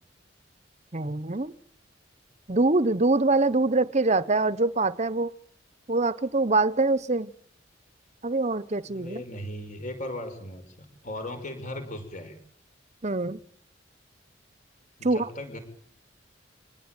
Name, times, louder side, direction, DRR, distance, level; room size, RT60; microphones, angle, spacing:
voice 1, 0.9-1.5 2.5-5.3 5.9-7.3 8.2-9.2 13.0-13.4 15.0-15.3, right 2 dB, 35° right, 16 dB, 1.0 m, -24 dB
voice 2, 8.8-12.4 15.0-15.6, left 1 dB, 40° left, 8 dB, 5.8 m, -37 dB
25.0 x 20.5 x 9.1 m, 0.65 s
head